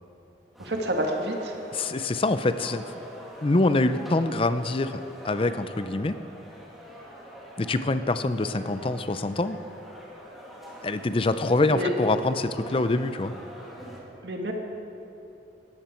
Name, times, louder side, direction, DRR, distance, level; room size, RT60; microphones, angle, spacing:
sound 1, 0.5-14.0, equal, ahead, 2.5 m, -45 dB
voice 1, 0.6-1.5 11.7-11.9 14.2-14.5, right 1 dB, 75° right, 1 dB, 2.0 m, -28 dB
voice 2, 1.7-2.8 3.4-6.2 7.6-9.6 10.8-13.3, left 2 dB, 30° left, 11 dB, 0.5 m, -25 dB
18.5 x 14.0 x 4.5 m, 2.9 s
head